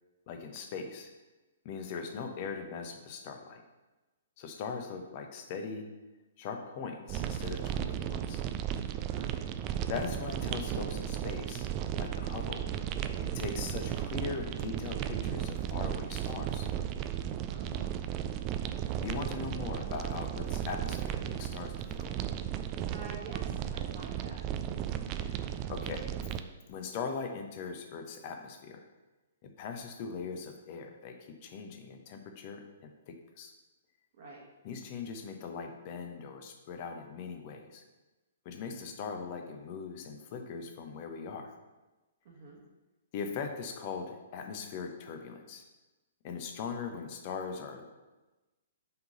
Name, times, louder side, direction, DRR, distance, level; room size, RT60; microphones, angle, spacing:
voice 1, 0.3-1.1 1.6-3.6 4.4-5.9 6.4-8.4 9.9-11.7 12.0-12.7 13.2-16.7 19.0-22.1 25.2-26.2 26.7-28.8 29.4-33.5 34.6-37.8 38.4-41.5 43.1-45.6 46.2-47.9, left 5 dB, 40° left, 5 dB, 0.8 m, -40 dB
sound 1, 7.1-26.4, right 10 dB, 30° right, 0.4 m, -35 dB
voice 2, 9.1-9.5 17.5-18.0 22.9-24.4 34.2-34.4 42.2-42.6, right 3 dB, 45° right, -2 dB, 1.3 m, -47 dB
5.7 x 3.8 x 5.3 m, 1.1 s
figure-of-eight pair, 120°, 0 cm